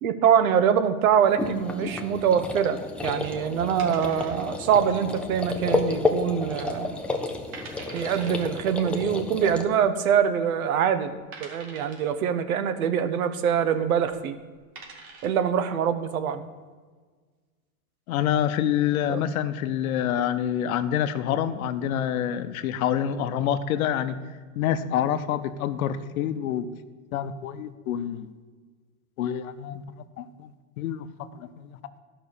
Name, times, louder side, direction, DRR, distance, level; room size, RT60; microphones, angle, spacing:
voice 1, 0.0-7.0 7.9-14.4 15.2-16.5 19.1-19.2, right 8 dB, 85° right, 11 dB, 1.0 m, -24 dB
sound 1, 1.3-9.6, left 3 dB, 5° left, 0.4 m, -31 dB
sound 2, 3.8-4.8 5.0-5.1 5.7-6.1 6.5-6.6 7.2-7.3 7.5-8.5 9.6-9.7 10.4-10.5 11.3-12.2 14.0-14.2 14.6-15.4, right 4 dB, 55° right, 2.2 m, -44 dB
voice 2, 18.1-24.2 24.6-26.7 27.1-28.3 29.2-29.8 30.2-31.1 31.4-32.0, left 10 dB, 80° left, 11 dB, 0.8 m, -27 dB
12.0 x 5.6 x 6.8 m, 1.5 s
supercardioid pair, 140°, 41 cm